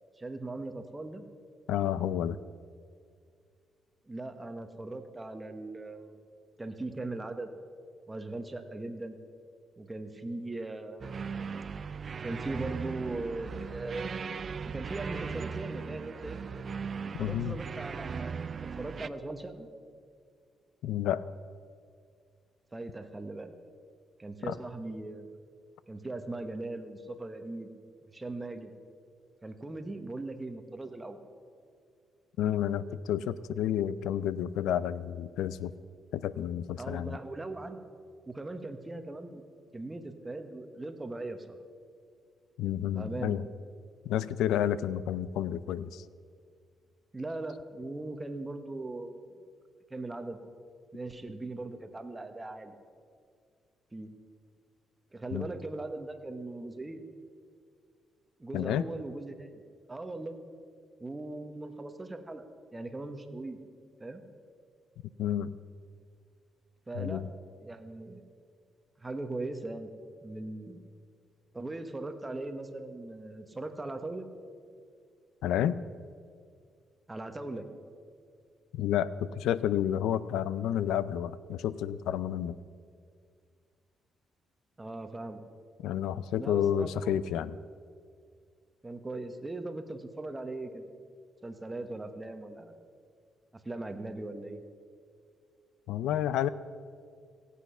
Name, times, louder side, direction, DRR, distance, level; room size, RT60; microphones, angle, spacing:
voice 1, 0.2-1.3 4.1-6.2 6.6-7.5 8.1-9.2 9.8-11.1 12.2-14.2 14.6-16.4 17.2-18.3 18.6-19.7 22.7-23.5 24.2-25.3 25.9-27.7 28.0-28.7 29.4-31.2 36.8-37.8 38.3-39.4 39.7-41.6 42.9-43.4 47.1-49.4 49.9-50.4 50.9-52.8 53.9-54.1 55.1-57.0 58.4-59.5 59.9-60.4 61.0-62.5 62.7-63.6 64.0-64.2 66.9-67.2 67.6-68.3 69.0-69.9 70.2-70.9 71.5-74.3 77.1-77.7 84.8-85.4 86.4-87.1 88.8-90.8 91.4-92.8 93.6-94.6, right 2 dB, 15° right, 7 dB, 1.2 m, -39 dB
voice 2, 1.7-2.4 17.2-17.6 20.8-21.2 24.5-24.6 32.4-35.7 36.1-37.2 42.6-43.4 44.0-46.0 55.3-55.5 58.5-58.8 65.2-65.5 66.9-67.3 75.4-75.8 78.7-82.6 85.8-87.6 95.9-96.5, left 10 dB, 90° left, 17 dB, 0.4 m, -30 dB
sound 1, 11.0-19.1, right 6 dB, 45° right, 0.4 m, -38 dB
16.5 x 8.4 x 5.6 m, 2.2 s
cardioid pair, 90°, 0 cm